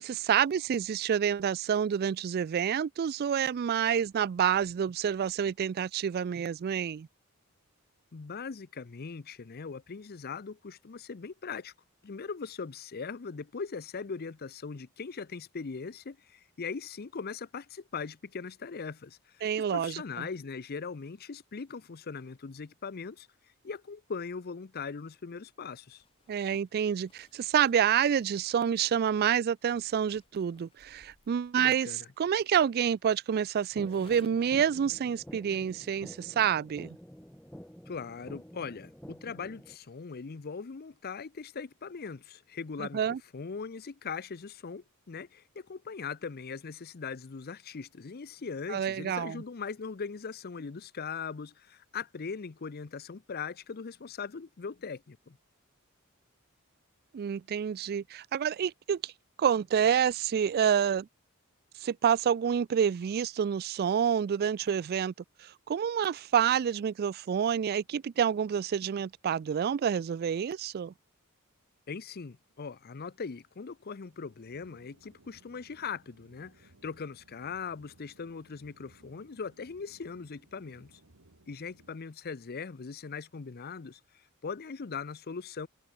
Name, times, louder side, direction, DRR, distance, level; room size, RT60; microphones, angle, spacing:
voice 1, 0.0-7.1 19.4-20.3 26.3-31.9 32.2-37.0 42.8-43.2 48.7-49.4 57.1-59.1 59.4-61.1 61.8-65.1 65.4-70.9, right 8 dB, 45° right, 0.3 m, -28 dB
voice 2, 8.1-11.7 12.0-19.5 19.7-23.3 23.6-26.0 31.6-32.1 37.9-43.0 43.3-55.4 71.9-81.0 81.5-84.0 84.4-85.7, left 5 dB, 45° left, 0.6 m, -40 dB
Zipper (clothing), 25.9-34.6, left 3 dB, 25° left, 4.9 m, -64 dB
sound 1, 33.8-39.8, equal, 5° left, 2.8 m, -49 dB
sound 2, 72.7-82.0, right 2 dB, 85° right, 2.1 m, -62 dB
head